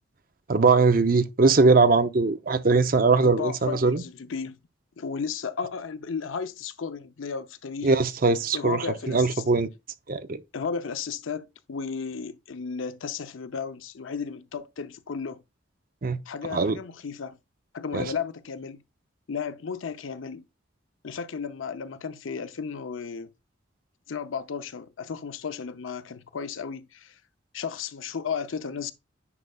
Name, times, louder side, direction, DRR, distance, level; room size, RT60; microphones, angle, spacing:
voice 1, 0.5-4.0 7.8-9.7 10.1-10.4 16.0-16.2 16.5-16.8 17.9-18.1, right 3 dB, 45° right, 0.6 m, -21 dB
voice 2, 3.2-4.6 5.0-8.0 8.5-9.4 10.5-15.4 16.3-17.4 17.7-18.8 19.3-20.4 21.0-23.3 24.1-27.2 27.5-28.9, left 6 dB, 85° left, 0.6 m, -34 dB
9.8 x 5.4 x 2.3 m
head